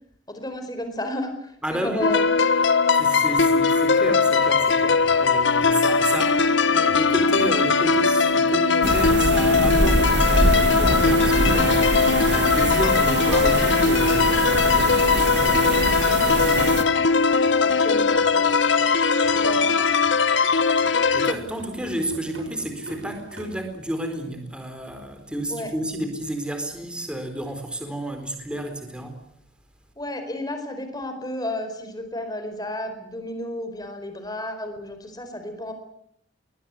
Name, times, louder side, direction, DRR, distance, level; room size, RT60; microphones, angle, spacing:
voice 1, 0.3-1.3 1.7-2.3 17.6-18.5 19.4-20.0 25.5-25.7 30.0-35.7, left 1 dB, 20° left, 7 dB, 4.7 m, -32 dB
voice 2, 1.6-2.1 2.9-16.7 21.1-29.2, right 1 dB, 5° right, 6 dB, 4.2 m, -31 dB
sound 1, 2.0-21.3, left 5 dB, 65° left, 1.4 m, -20 dB
sound 2, 4.0-23.5, right 1 dB, 85° right, 7.3 m, -43 dB
sound 3, 8.8-16.8, right 2 dB, 60° right, 2.3 m, -24 dB
22.0 x 19.0 x 9.7 m, 0.71 s
head